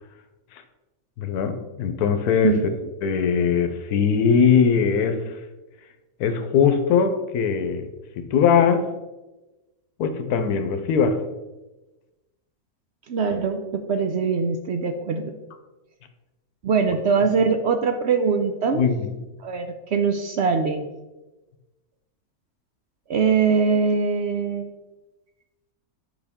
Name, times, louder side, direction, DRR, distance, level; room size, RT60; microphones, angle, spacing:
voice 1, 1.2-2.6 3.0-5.4 6.2-7.8 8.2-8.9 10.0-11.2 18.7-19.2, left 6 dB, 85° left, 8 dB, 1.2 m, -21 dB
voice 2, 13.1-15.3 16.6-18.8 19.4-20.9 23.1-24.7, right 5 dB, 65° right, 6 dB, 0.7 m, -22 dB
8.3 x 5.4 x 3.6 m, 1.1 s
omnidirectional pair, 1.6 m